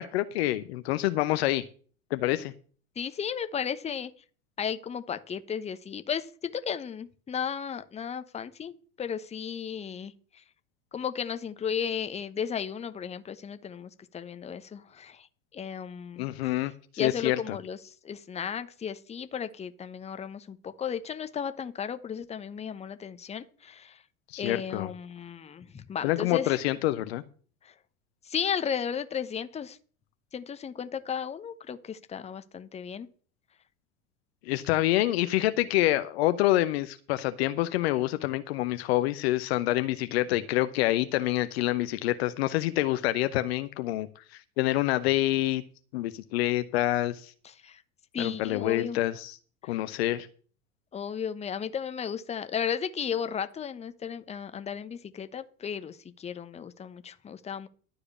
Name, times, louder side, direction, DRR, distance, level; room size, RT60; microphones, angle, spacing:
voice 1, 0.0-1.6 2.1-2.5 16.2-17.6 24.3-24.9 26.0-27.2 34.4-45.6 45.9-47.3 48.2-49.4 49.7-50.3, left 15 dB, 50° left, 12 dB, 0.7 m, -27 dB
voice 2, 3.0-4.1 4.6-10.4 10.9-15.3 15.5-16.3 17.0-24.0 24.4-26.6 27.6-27.7 28.2-29.8 30.3-33.1 47.4-47.8 48.1-49.0 49.6-49.8 50.9-57.7, left 7 dB, 15° left, 11 dB, 0.9 m, -34 dB
12.0 x 4.9 x 8.3 m, 0.42 s
figure-of-eight pair, 80°, 40 cm